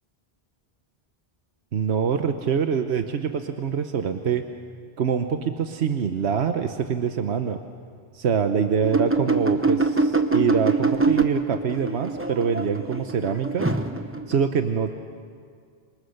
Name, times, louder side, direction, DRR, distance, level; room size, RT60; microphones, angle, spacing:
voice 1, 1.7-4.4 5.0-7.6 8.1-13.7 14.3-14.9, right 7 dB, 85° right, 7 dB, 1.2 m, -25 dB
sound 1, 8.8-14.4, right 3 dB, 15° right, 1.0 m, -24 dB
27.5 x 25.0 x 6.6 m, 2.1 s
omnidirectional pair, 1.1 m